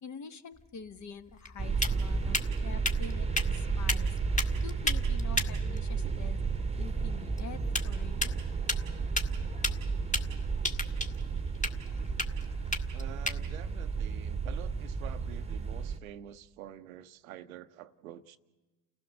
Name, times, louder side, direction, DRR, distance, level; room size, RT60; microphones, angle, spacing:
voice 1, 0.0-4.2 4.6-6.4 6.8-8.4, left 6 dB, 45° left, 1.4 m, -46 dB
sound 1, 0.5-15.2, left 1 dB, 20° left, 1.7 m, -37 dB
sound 2, 1.6-16.0, right 5 dB, 15° right, 1.1 m, -32 dB
voice 2, 12.9-18.4, right 12 dB, 85° right, 0.8 m, -48 dB
29.5 x 16.0 x 6.6 m
hypercardioid pair, 65°, 40 cm